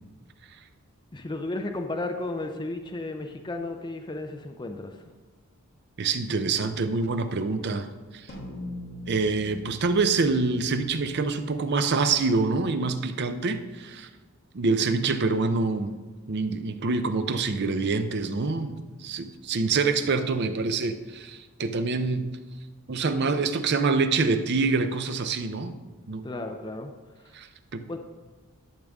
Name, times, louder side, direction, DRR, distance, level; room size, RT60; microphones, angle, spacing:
voice 1, 1.1-5.0 26.2-26.9 27.2-27.3 27.9-28.0, left 2 dB, 20° left, 5 dB, 0.5 m, -33 dB
voice 2, 6.0-7.9 8.1-8.3 9.1-14.1 14.5-16.0 16.3-22.3 22.9-25.8 26.1-26.3 27.3-27.8, right 4 dB, 50° right, 9 dB, 0.6 m, -26 dB
sound 1, 8.3-12.9, left 1 dB, 45° left, 1.6 m, -43 dB
12.0 x 6.7 x 3.6 m, 1.3 s
head